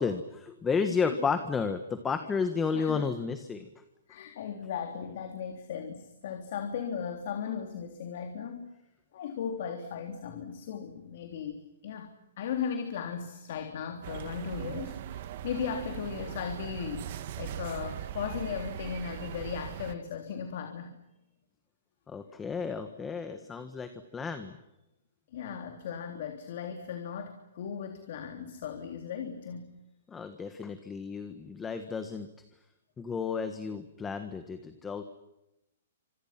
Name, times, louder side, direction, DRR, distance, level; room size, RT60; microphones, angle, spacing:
voice 1, 0.0-3.7 22.1-24.6 30.1-32.3 33.0-35.0, left 5 dB, 10° left, 8 dB, 1.6 m, -32 dB
voice 2, 2.7-3.0 4.1-8.7 9.1-21.0 25.3-29.8, left 7 dB, 55° left, 5 dB, 3.5 m, -37 dB
sound 1, 14.0-19.9, right 11 dB, 45° right, 1.8 m, -40 dB
30.0 x 26.5 x 6.0 m, 0.91 s
hypercardioid pair, 160°, 0 cm